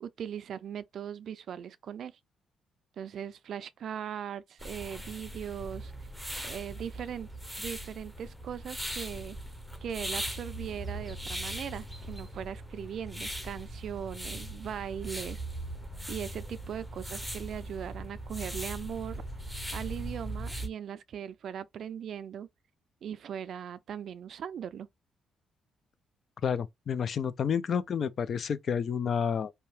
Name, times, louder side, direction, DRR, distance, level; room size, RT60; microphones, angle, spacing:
voice 1, 0.0-2.1 3.0-5.9 6.4-7.3 7.6-9.4 9.8-15.4 16.1-19.2 19.7-22.5 23.0-24.9, right 8 dB, 65° right, 0.3 m, -39 dB
sound 1, 4.6-20.7, right 1 dB, ahead, 0.7 m, -39 dB
voice 2, 26.4-29.5, left 7 dB, 55° left, 0.3 m, -30 dB
2.7 x 2.2 x 3.0 m
cardioid pair, 90°, 0 cm